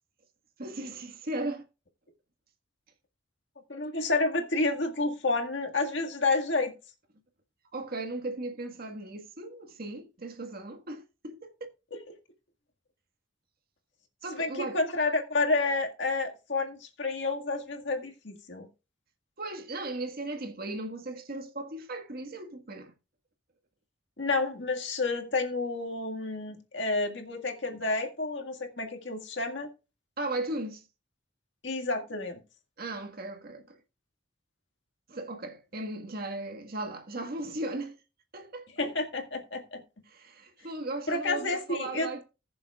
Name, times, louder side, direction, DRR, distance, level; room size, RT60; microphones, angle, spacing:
voice 1, 0.6-1.7 7.7-11.5 14.2-14.8 19.4-22.9 30.2-30.8 32.8-33.8 35.1-38.0 38.3-38.7 40.1-42.2, right 2 dB, 55° right, 1.6 m, -37 dB
voice 2, 3.7-6.7 11.9-12.0 14.4-18.7 24.2-29.7 31.6-32.4 38.8-39.8 41.1-42.2, left 3 dB, 70° left, 1.9 m, -30 dB
20.0 x 7.0 x 2.4 m
head